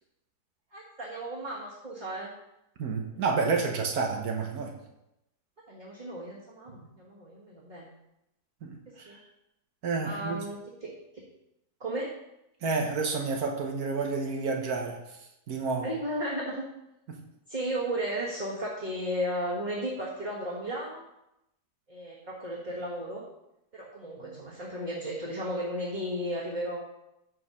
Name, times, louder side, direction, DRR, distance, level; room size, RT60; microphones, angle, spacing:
voice 1, 0.7-2.3 5.7-7.9 8.9-9.2 10.0-11.2 11.8-12.1 15.8-16.7 17.5-21.0 21.9-23.2 23.7-26.8, right 1 dB, 30° right, -7 dB, 1.7 m, -34 dB
voice 2, 2.8-4.7 8.6-9.2 9.8-10.4 12.6-15.2 15.5-15.9 17.1-17.2 24.2-24.4, right 4 dB, 65° right, 2 dB, 1.5 m, -30 dB
8.4 x 4.7 x 5.6 m, 0.87 s
omnidirectional pair, 1.8 m